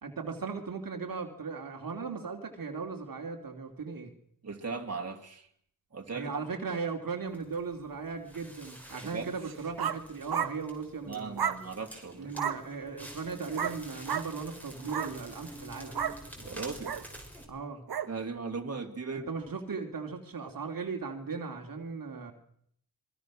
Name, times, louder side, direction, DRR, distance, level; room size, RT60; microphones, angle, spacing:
voice 1, 0.0-4.1 6.1-11.5 12.2-16.0 17.5-17.8 19.1-22.3, right 5 dB, 70° right, 3 dB, 2.7 m, -37 dB
voice 2, 4.4-5.5 5.9-6.4 9.1-9.3 11.1-12.3 16.4-17.0 18.1-19.3, right 4 dB, 45° right, 2 dB, 3.0 m, -38 dB
Crackle, 7.3-17.4, equal, 5° left, 5.4 m, -48 dB
sound 1, 9.4-10.0 10.3-10.5 11.4-11.6 12.3-12.6 13.5-13.8 14.1-14.3 14.8-15.1 15.9-16.2 16.8-17.0 17.9-18.1, right 8 dB, 90° right, 1.4 m, -32 dB
26.5 x 22.0 x 6.2 m, 0.68 s
wide cardioid pair, 100°, 36 cm